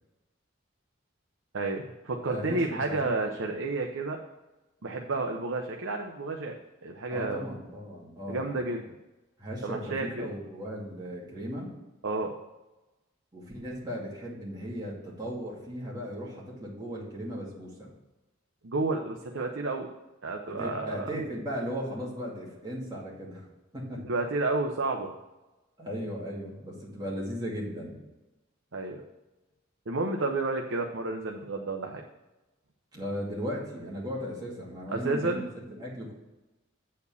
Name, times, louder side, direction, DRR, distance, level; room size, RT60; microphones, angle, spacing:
voice 1, 1.5-4.2 4.8-6.6 6.8-7.5 8.3-8.8 9.6-10.3 12.0-12.3 18.6-19.9 20.2-21.1 24.1-25.1 28.7-29.0 29.9-32.0 34.9-35.4, right 3 dB, 65° right, 2 dB, 0.7 m, -31 dB
voice 2, 2.2-3.3 7.1-8.6 9.4-11.7 13.3-17.9 20.6-23.4 23.7-24.0 25.8-28.0 32.9-36.1, equal, 20° right, -5 dB, 2.3 m, -37 dB
8.3 x 4.4 x 7.0 m, 1.1 s
head